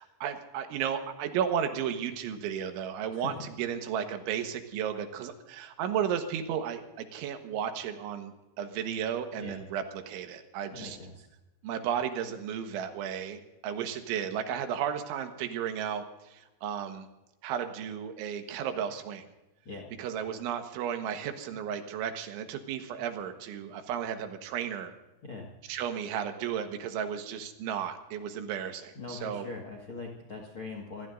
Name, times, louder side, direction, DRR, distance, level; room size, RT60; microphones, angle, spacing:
voice 1, 0.0-11.0 11.6-17.1 17.4-19.2 20.0-24.9 25.7-29.5, right 8 dB, 85° right, 6 dB, 3.7 m, -34 dB
voice 2, 3.1-3.5 9.3-9.6 10.7-11.3 19.6-19.9 25.2-25.5 28.9-31.1, left 3 dB, 55° left, 0 dB, 1.4 m, -41 dB
26.0 x 18.5 x 2.6 m, 1.0 s
omnidirectional pair, 5.4 m